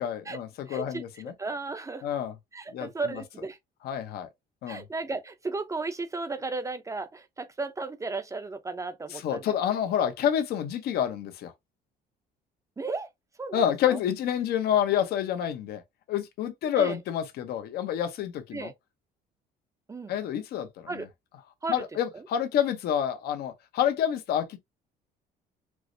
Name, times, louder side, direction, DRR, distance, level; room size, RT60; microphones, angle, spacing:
voice 1, 0.0-1.3 2.0-2.3 2.7-2.9 3.8-4.3 4.6-4.8 9.2-11.5 13.5-15.8 16.1-18.7 20.1-20.7 21.7-24.6, left 9 dB, 70° left, 0.7 m, -28 dB
voice 2, 0.7-2.0 2.5-3.6 4.7-9.5 12.8-13.1 13.4-14.0 16.8-17.0 18.5-18.7 19.9-20.1 20.9-21.1 21.6-21.8 22.1-22.3, right 3 dB, 20° right, 0.5 m, -35 dB
4.7 x 2.0 x 2.6 m
cardioid pair, 110°, 17 cm